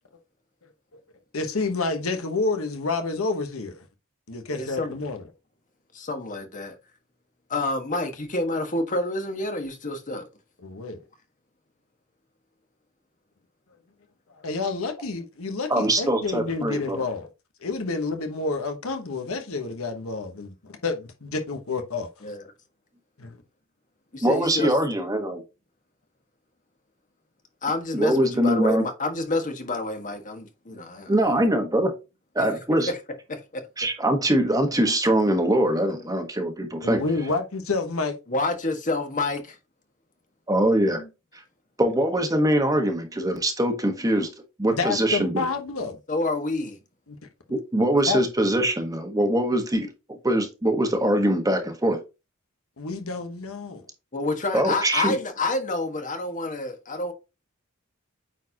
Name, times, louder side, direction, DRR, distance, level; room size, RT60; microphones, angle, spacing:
voice 1, 1.3-3.9 4.3-5.2 10.6-11.0 14.4-17.3 17.6-22.1 23.2-23.4 36.8-38.2 44.7-46.0 47.1-47.2 48.1-48.2 52.8-53.8, left 3 dB, 80° left, 1.1 m, -29 dB
voice 2, 4.5-4.9 5.9-6.8 7.5-10.2 22.2-22.4 24.1-24.7 27.6-31.5 32.4-32.5 32.9-33.0 33.3-33.6 38.3-39.6 40.9-41.1 46.1-46.8 54.1-57.1, left 2 dB, 40° left, 1.4 m, -28 dB
voice 3, 15.7-17.0 24.2-25.4 27.9-28.8 31.1-31.9 32.3-32.9 33.8-37.0 40.5-41.0 41.8-44.3 44.6-45.3 47.5-49.9 50.2-52.0 54.5-55.1, right 1 dB, 15° right, 1.3 m, -22 dB
8.9 x 4.3 x 2.9 m
head